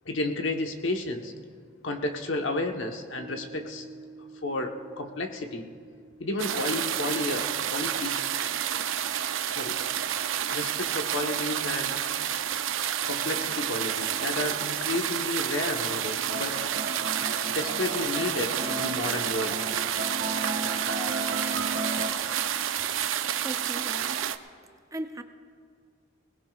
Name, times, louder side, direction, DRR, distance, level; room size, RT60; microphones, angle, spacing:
voice 1, 0.0-1.3 1.8-3.8 4.4-5.7 6.2-8.4 9.6-9.8 10.5-11.9 13.1-16.6 17.5-19.6, left 2 dB, 75° left, 4 dB, 1.1 m, -31 dB
Piano, 3.2-9.9, right 3 dB, 35° right, 3.2 m, -51 dB
sound 1, 6.4-24.4, right 10 dB, 85° right, 0.5 m, -30 dB
sound 2, 16.3-22.1, right 2 dB, 55° right, 1.9 m, -34 dB
voice 2, 23.4-24.2 24.9-25.2, right 1 dB, 15° right, 7 dB, 0.5 m, -37 dB
21.5 x 19.0 x 2.4 m, 2.1 s
head